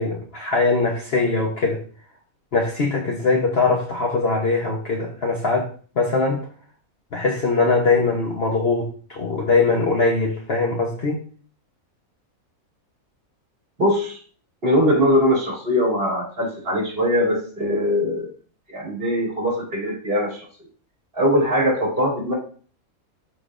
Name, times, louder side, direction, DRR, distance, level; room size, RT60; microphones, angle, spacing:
voice 1, 0.0-1.8 2.5-5.7 6.0-6.5 7.1-11.2, left 3 dB, 50° left, 1.1 m, -21 dB
voice 2, 13.8-14.2 14.6-18.3 18.7-20.4 21.1-22.3, equal, 40° right, 3.4 m, -21 dB
11.5 x 3.9 x 2.5 m
omnidirectional pair, 1.5 m